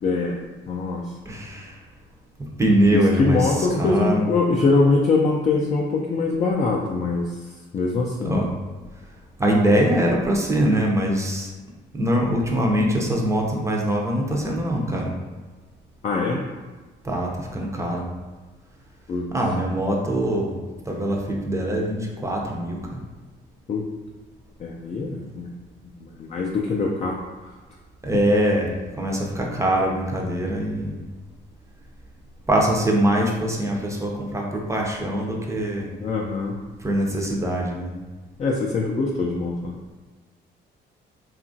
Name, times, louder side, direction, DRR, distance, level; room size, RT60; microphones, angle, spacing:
voice 1, 0.0-0.4 0.7-1.1 2.9-7.5 7.7-8.4 16.0-16.4 19.1-19.3 23.7-23.9 24.6-25.5 26.0-27.2 36.0-36.5 38.4-39.7, left 3 dB, 35° left, -1 dB, 0.3 m, -23 dB
voice 2, 1.3-1.8 2.6-4.3 8.2-8.5 9.4-11.5 11.9-15.1 17.0-18.0 19.3-20.6 20.8-23.0 28.0-28.7 29.0-30.9 32.5-35.9 36.8-37.9, right 1 dB, 15° right, -1 dB, 0.5 m, -23 dB
2.8 x 2.4 x 2.6 m, 1.3 s
cardioid pair, 90°, 20 cm